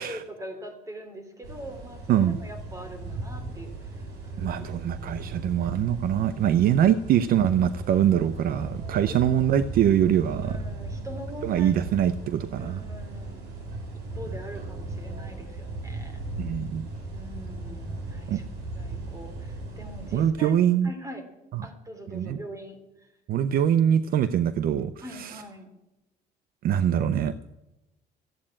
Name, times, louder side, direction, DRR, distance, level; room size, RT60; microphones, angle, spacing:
voice 1, 0.0-5.3 8.9-9.2 10.4-11.8 12.6-13.5 13.9-16.2 17.1-18.5 18.7-21.2 21.6-23.1 25.0-25.7, equal, 20° right, 7 dB, 3.2 m, -43 dB
sound 1, 1.4-20.3, right 2 dB, 80° right, 5.8 m, -37 dB
voice 2, 4.4-10.6 11.4-12.8 16.4-16.9 18.3-18.4 20.1-20.9 21.5-21.7 22.1-22.4 23.3-25.4 26.6-27.3, right 10 dB, 60° right, 14 dB, 0.6 m, -23 dB
14.0 x 8.7 x 8.7 m, 0.98 s
cardioid pair, 110°, 17 cm